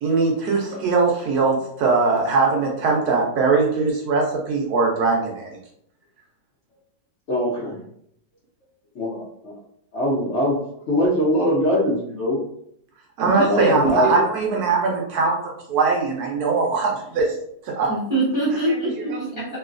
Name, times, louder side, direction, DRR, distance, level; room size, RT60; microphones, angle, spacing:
voice 1, 0.0-5.6 13.2-15.3 15.7-17.4 17.6-17.9 19.1-19.4, right 4 dB, 70° right, -1 dB, 1.0 m, -21 dB
voice 2, 7.3-7.8 9.0-9.1 9.4-9.5 9.9-10.6 10.9-12.4 13.4-14.1, left 1 dB, 60° left, -7 dB, 0.7 m, -22 dB
voice 3, 13.3-13.7 14.0-14.1 17.9-19.4, right 1 dB, 25° right, -10 dB, 0.4 m, -24 dB
3.0 x 2.7 x 2.4 m, 0.71 s
omnidirectional pair, 2.0 m